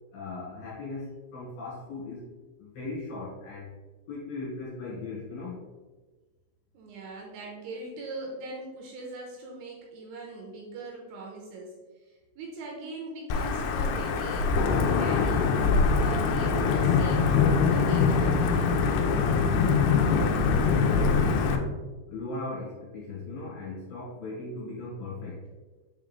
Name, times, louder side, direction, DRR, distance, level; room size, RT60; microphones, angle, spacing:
voice 1, 0.1-2.3 2.6-3.7 4.1-5.6 20.1-21.8 22.1-25.5, left 2 dB, 60° left, -9 dB, 3.1 m, -38 dB
voice 2, 6.7-11.7 12.0-15.4 16.0-18.7, right 3 dB, 80° right, -2 dB, 3.0 m, -41 dB
Wind / Thunder / Rain, 13.3-21.6, left 5 dB, 85° left, 2.7 m, -23 dB
7.4 x 3.7 x 3.5 m, 1.2 s
omnidirectional pair, 5.9 m